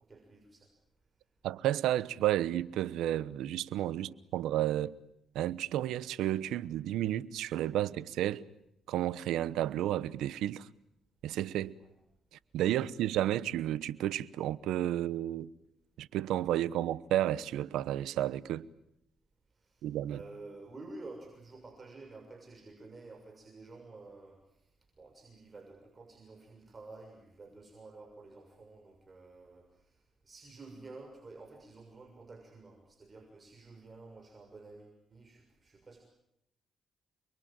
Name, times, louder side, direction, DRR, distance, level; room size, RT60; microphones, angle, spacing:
voice 1, 0.1-0.7 11.7-11.9 12.7-12.9 19.6-24.4 25.0-29.9 30.2-36.0, right 3 dB, 30° right, 6.6 m, -51 dB
voice 2, 1.4-4.9 5.3-8.4 8.9-10.7 11.2-11.7 12.5-15.5 16.0-18.6 19.8-20.2, right 13 dB, 85° right, 1.0 m, -32 dB
29.0 x 22.5 x 8.9 m
cardioid pair, 90°, 0 cm